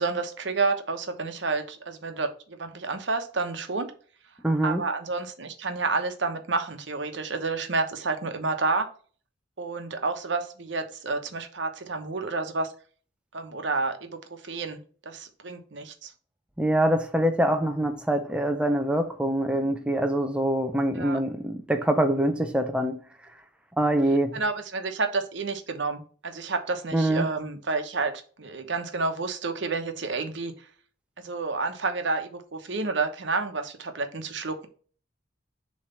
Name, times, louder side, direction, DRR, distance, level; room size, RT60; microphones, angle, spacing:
voice 1, 0.0-3.9 4.6-8.9 9.6-12.7 13.3-16.1 20.9-21.2 24.3-30.7 31.2-34.7, right 3 dB, 65° right, 1.0 m, -30 dB
voice 2, 4.4-4.8 16.6-23.0 23.8-24.3 26.9-27.3, right 1 dB, 5° right, 0.5 m, -24 dB
6.9 x 3.2 x 5.5 m
head